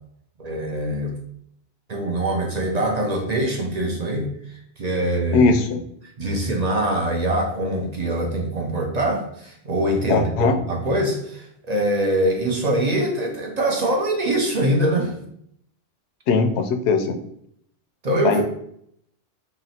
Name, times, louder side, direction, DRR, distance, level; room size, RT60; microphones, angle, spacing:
voice 1, 0.4-1.2 1.9-4.3 4.8-5.5 6.2-15.1 18.0-18.4, right 1 dB, 45° right, 1 dB, 0.6 m, -23 dB
voice 2, 5.3-5.8 10.1-10.6 16.3-17.2 18.2-18.4, left 4 dB, 90° left, 7 dB, 0.9 m, -19 dB
2.9 x 2.9 x 4.1 m, 0.70 s
omnidirectional pair, 1.1 m